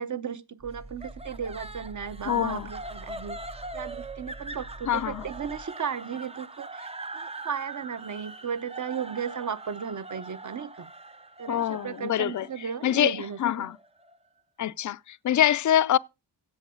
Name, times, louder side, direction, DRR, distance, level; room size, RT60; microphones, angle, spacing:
voice 1, 0.0-3.4 3.7-10.9 11.4-13.7, right 7 dB, 40° right, 0.9 m, -35 dB
sound 1, 0.6-5.6, right 2 dB, 60° right, 3.0 m, -45 dB
sound 2, 1.0-14.2, right 2 dB, 15° right, 0.5 m, -42 dB
voice 2, 2.3-2.7 4.9-5.2 11.5-12.5 12.8-13.8 14.6-16.0, left 11 dB, 45° left, 0.5 m, -25 dB
16.0 x 7.0 x 3.8 m
wide cardioid pair, 125°, 45 cm